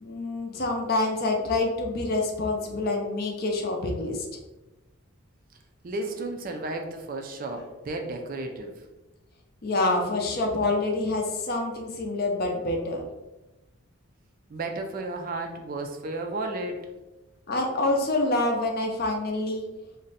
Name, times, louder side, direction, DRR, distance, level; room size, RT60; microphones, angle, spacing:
voice 1, 0.0-4.3 9.6-13.0 17.5-19.7, left 2 dB, 45° left, 2 dB, 0.5 m, -27 dB
voice 2, 5.8-8.7 14.5-16.9, right 2 dB, 40° right, 4 dB, 0.3 m, -33 dB
2.5 x 2.1 x 3.9 m, 1.0 s
head